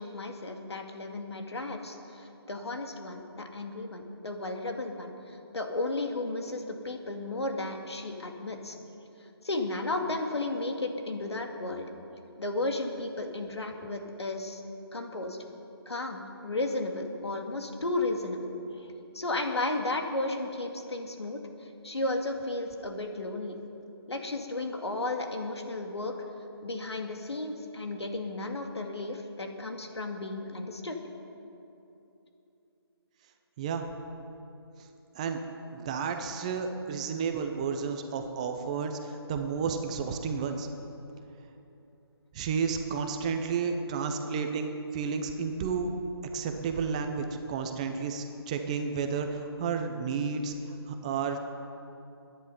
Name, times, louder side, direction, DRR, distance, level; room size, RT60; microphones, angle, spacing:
voice 1, 0.0-8.8 9.4-11.9 12.4-14.6 14.9-15.4 15.9-23.6 24.1-26.1 26.6-31.0, left 2 dB, 90° left, 3 dB, 2.2 m, -34 dB
voice 2, 33.6-33.9 35.1-35.4 35.7-40.7 42.3-45.9 46.3-50.5 50.9-51.4, right 5 dB, 15° right, 5 dB, 0.6 m, -31 dB
22.0 x 10.0 x 5.4 m, 2.9 s
figure-of-eight pair, 165°, 14 cm